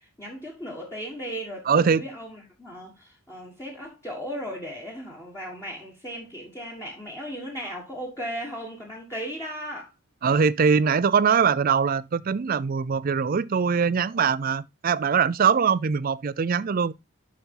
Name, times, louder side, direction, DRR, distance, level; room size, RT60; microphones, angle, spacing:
voice 1, 0.0-9.9, equal, 15° left, 1.5 m, -36 dB
voice 2, 1.7-2.0 10.2-16.9, right 6 dB, 40° right, 0.4 m, -22 dB
11.0 x 4.3 x 3.7 m
head